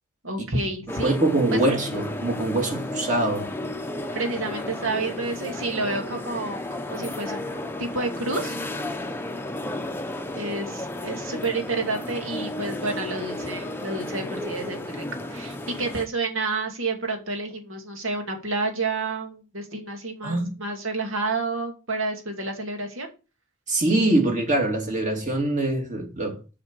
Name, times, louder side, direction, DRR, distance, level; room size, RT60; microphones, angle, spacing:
voice 1, 0.2-1.2 1.5-1.8 4.1-8.6 10.4-15.1 15.3-23.1, right 3 dB, 70° right, 2.5 m, -30 dB
sound 1, 0.9-16.1, left 1 dB, 10° left, 0.8 m, -33 dB
voice 2, 1.0-3.5 20.2-20.5 23.7-26.6, right 2 dB, 35° right, 2.6 m, -24 dB
7.1 x 6.1 x 6.7 m
head